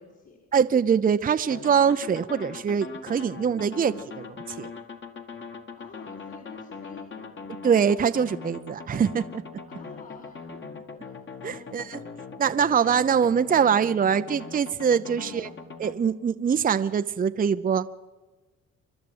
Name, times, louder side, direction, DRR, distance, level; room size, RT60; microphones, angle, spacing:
voice 1, 0.0-0.4 5.7-7.4 9.6-11.9 15.2-15.5, left 5 dB, 60° left, -5 dB, 4.5 m, -50 dB
voice 2, 0.5-4.7 7.6-9.3 11.4-12.0 12.4-15.5 15.8-17.9, right 7 dB, 30° right, 11 dB, 0.5 m, -23 dB
sound 1, 1.5-15.9, left 4 dB, 40° left, 1.8 m, -41 dB
28.5 x 11.5 x 7.9 m, 1.2 s
cardioid pair, 90°, 30 cm